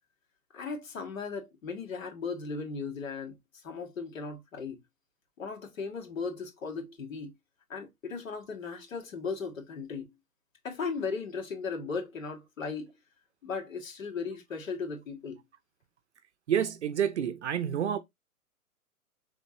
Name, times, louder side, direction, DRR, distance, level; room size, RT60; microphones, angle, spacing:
voice 1, 0.5-3.3 3.6-4.8 5.4-7.3 7.7-10.1 10.6-12.9 13.4-15.4, left 5 dB, 60° left, 1.9 m, -37 dB
voice 2, 16.5-18.0, right 9 dB, 50° right, 0.6 m, -28 dB
5.2 x 3.6 x 2.7 m
figure-of-eight pair, 125°, 44 cm